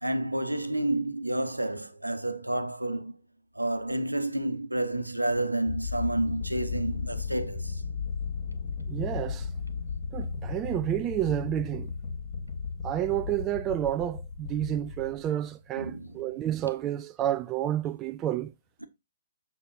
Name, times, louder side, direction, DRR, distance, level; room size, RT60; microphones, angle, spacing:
voice 1, 0.0-3.2 3.5-7.8 15.8-16.1, right 1 dB, 90° right, 1.0 m, -30 dB
sound 1, 5.7-15.7, left 5 dB, 40° left, 1.9 m, -35 dB
voice 2, 8.9-9.5 10.1-11.9 12.8-18.5, right 12 dB, 20° right, 0.4 m, -30 dB
7.1 x 6.9 x 2.6 m
figure-of-eight pair, 125°, 0 cm